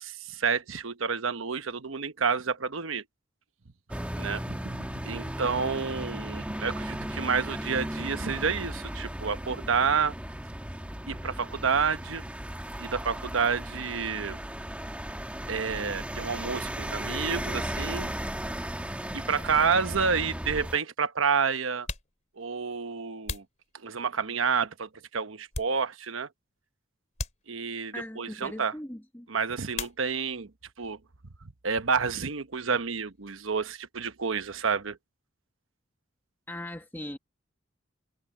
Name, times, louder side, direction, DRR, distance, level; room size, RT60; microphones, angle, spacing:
voice 1, 0.0-3.0 4.2-10.1 11.1-12.2 12.8-14.4 15.5-18.1 19.1-21.9 22.4-23.4 23.8-26.3 27.5-28.7 29.3-30.5 30.8-31.0 31.6-35.0, right 5 dB, 90° right, 1.0 m, -29 dB
sound 1, 3.9-20.8, right 1 dB, 5° right, 1.4 m, -36 dB
sound 2, 21.1-21.2 21.7-24.3 24.9-26.2 26.5-26.7 27.1-28.0 29.7-30.5 30.8-31.5 31.7-33.9, left 3 dB, 35° left, 3.0 m, -42 dB
voice 2, 27.9-29.3 36.5-37.2, left 1 dB, 10° left, 1.5 m, -39 dB
head